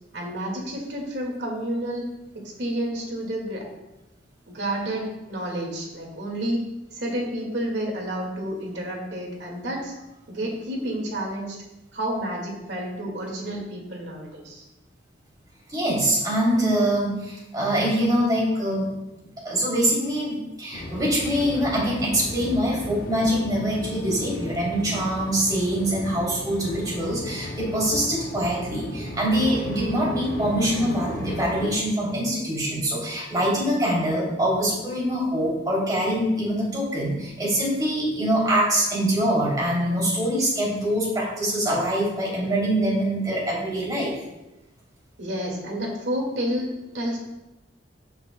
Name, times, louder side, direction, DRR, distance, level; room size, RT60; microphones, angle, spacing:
voice 1, 0.1-2.0 2.3-3.6 4.5-6.6 6.9-9.9 10.3-11.6 11.9-14.6 45.2-46.7 46.9-47.2, right 1 dB, 70° right, 0 dB, 1.9 m, -30 dB
voice 2, 15.7-18.9 19.4-44.1, right 1 dB, 20° right, -5 dB, 3.0 m, -24 dB
sound 1, 20.7-31.7, equal, 50° left, 0.9 m, -35 dB
13.0 x 5.8 x 2.2 m, 0.98 s
head